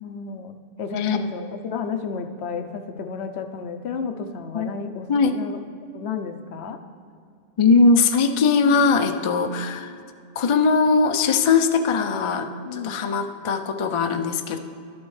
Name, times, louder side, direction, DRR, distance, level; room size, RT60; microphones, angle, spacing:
voice 1, 0.0-5.6 5.9-6.8 9.5-9.7 12.6-13.0, left 6 dB, 80° left, 7 dB, 0.9 m, -32 dB
voice 2, 7.6-9.9 10.4-14.6, left 4 dB, 50° left, 7 dB, 0.4 m, -20 dB
12.0 x 7.2 x 3.2 m, 2.3 s
omnidirectional pair, 1.1 m